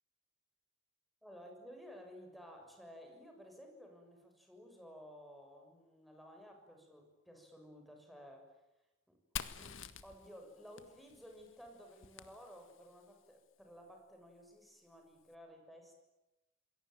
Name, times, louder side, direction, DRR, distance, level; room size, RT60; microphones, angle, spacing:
voice 1, 1.2-8.6 9.1-9.2 9.5-16.0, equal, ahead, 3 dB, 6.7 m, -55 dB
Fire, 9.4-13.0, left 7 dB, 75° left, 1.7 m, -48 dB
28.5 x 21.5 x 9.3 m, 0.97 s
head